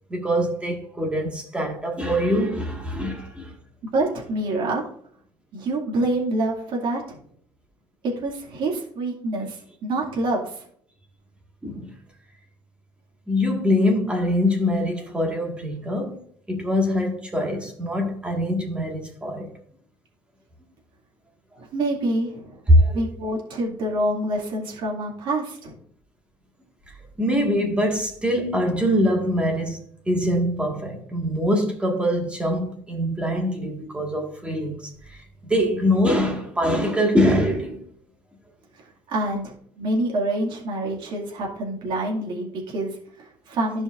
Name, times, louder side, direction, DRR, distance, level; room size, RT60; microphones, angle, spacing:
voice 1, 0.1-3.5 11.6-11.9 13.3-16.2 16.5-19.5 22.7-23.0 26.9-29.8 30.1-37.8, equal, 10° right, 1.7 m, -23 dB
voice 2, 3.9-4.8 5.5-7.2 8.2-10.7 21.6-22.6 22.9-25.7 38.7-43.8, right 2 dB, 55° right, 2.2 m, -27 dB
14.5 x 5.0 x 2.5 m
cardioid pair, 140°, 10 cm